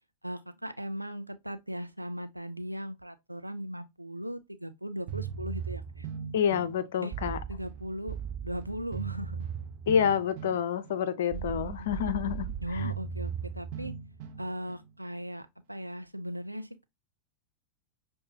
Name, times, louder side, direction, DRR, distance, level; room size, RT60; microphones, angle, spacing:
voice 1, 0.2-6.1 7.0-7.1 7.5-8.2 8.4-9.5 11.3-12.0 12.6-13.9 14.4-16.8, equal, 85° right, 0.4 m, -38 dB
sound 1, 5.1-14.9, right 7 dB, 45° right, 0.7 m, -38 dB
voice 2, 6.3-7.4 9.9-12.9, left 8 dB, 60° left, 0.6 m, -28 dB
6.3 x 2.2 x 2.7 m
figure-of-eight pair, 90°, 0 cm